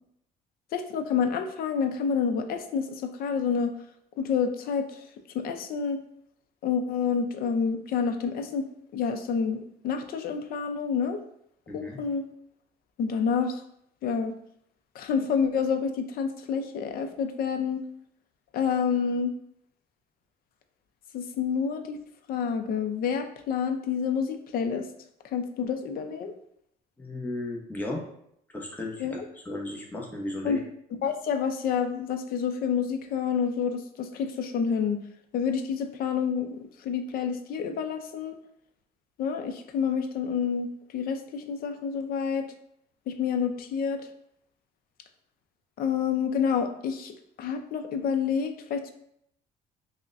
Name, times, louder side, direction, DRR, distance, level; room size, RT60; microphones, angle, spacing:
voice 1, 0.7-3.8 4.2-5.0 5.3-6.0 6.6-8.7 8.9-11.2 11.7-12.3 13.0-13.6 14.0-14.4 15.0-17.8 18.5-19.3 21.1-22.0 22.3-24.9 25.3-26.3 29.0-29.1 30.4-30.6 31.0-35.0 35.3-38.4 39.2-42.5 43.1-44.1 45.8-48.9, left 6 dB, 60° left, 7 dB, 0.5 m, -28 dB
voice 2, 11.7-12.0 27.0-28.0 28.5-29.2 29.4-30.6, left 2 dB, 10° left, -1 dB, 0.7 m, -35 dB
5.8 x 2.1 x 2.5 m, 0.72 s
cardioid pair, 110°, 17 cm